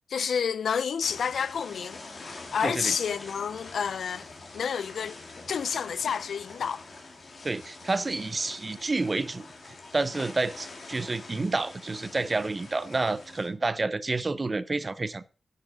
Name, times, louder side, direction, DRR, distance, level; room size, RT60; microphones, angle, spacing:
voice 1, 0.1-4.3 4.5-5.2 5.5-6.8, left 7 dB, 85° left, 0.4 m, -30 dB
sound 1, 1.0-13.5, left 3 dB, 45° left, 2.7 m, -45 dB
voice 2, 2.6-2.9 7.4-9.5 9.9-15.2, right 3 dB, 30° right, 0.6 m, -29 dB
10.5 x 6.7 x 5.1 m
wide cardioid pair, 125°, 0 cm